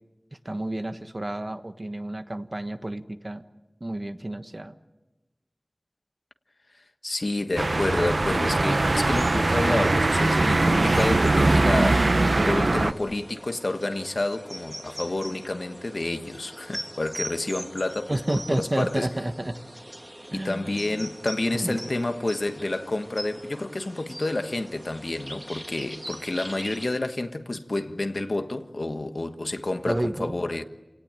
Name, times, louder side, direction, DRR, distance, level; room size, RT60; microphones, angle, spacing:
voice 1, 0.4-3.4 3.8-4.7 18.1-19.6 20.3-20.9 21.5-21.9 29.8-30.3, right 1 dB, 40° right, 1.3 m, -30 dB
voice 2, 7.0-19.1 20.3-30.6, left 2 dB, 65° left, 1.4 m, -29 dB
sound 1, 7.6-12.9, right 2 dB, 70° right, 0.8 m, -21 dB
sound 2, 9.1-26.9, right 1 dB, 20° right, 2.3 m, -42 dB
28.5 x 18.5 x 8.9 m
wide cardioid pair, 50°, 0 cm